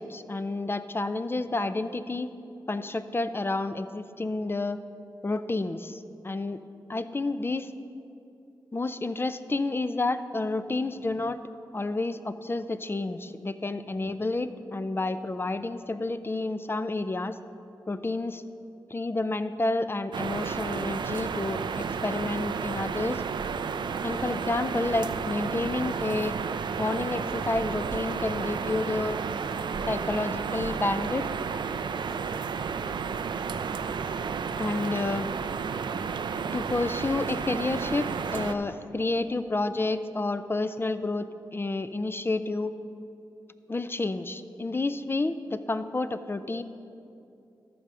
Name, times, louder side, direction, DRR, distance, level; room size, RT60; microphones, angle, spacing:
voice 1, 0.0-2.3 2.7-4.8 5.2-6.6 6.9-7.7 8.7-11.4 11.7-17.4 17.9-18.4 18.9-23.2 24.0-26.3 26.8-29.2 29.8-31.3 34.6-35.3 36.5-41.3 41.5-42.7 43.7-46.6, left 2 dB, 30° left, 12 dB, 0.5 m, -30 dB
sound 1, 20.1-38.5, right 6 dB, 70° right, 0.4 m, -32 dB
13.5 x 5.6 x 4.9 m, 2.7 s
cardioid pair, 45°, 8 cm